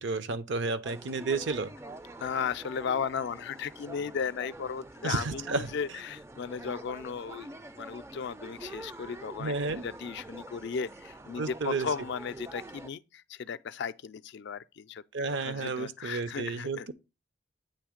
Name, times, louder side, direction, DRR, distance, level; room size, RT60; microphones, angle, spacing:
voice 1, 0.0-1.7 5.0-5.7 9.4-9.9 11.4-11.9 15.1-16.9, right 3 dB, 65° right, 0.6 m, -32 dB
sound 1, 0.8-12.9, right 2 dB, 15° right, 0.4 m, -46 dB
voice 2, 2.2-7.5 7.8-16.9, left 6 dB, 60° left, 0.4 m, -36 dB
8.8 x 3.1 x 5.0 m
head